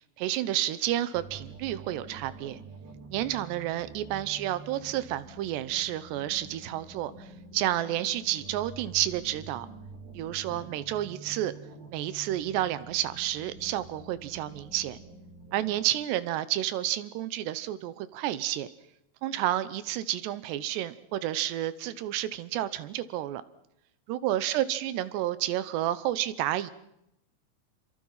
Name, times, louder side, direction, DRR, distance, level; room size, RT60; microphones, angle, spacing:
voice 1, 0.2-2.6 3.1-7.3 7.5-9.7 10.1-11.5 11.9-15.0 15.5-18.7 19.2-23.4 24.1-26.7, right 13 dB, 90° right, 15 dB, 3.2 m, -30 dB
sound 1, 1.1-15.8, right 4 dB, 65° right, 5.1 m, -47 dB
28.0 x 24.0 x 5.7 m, 0.83 s
omnidirectional pair, 4.8 m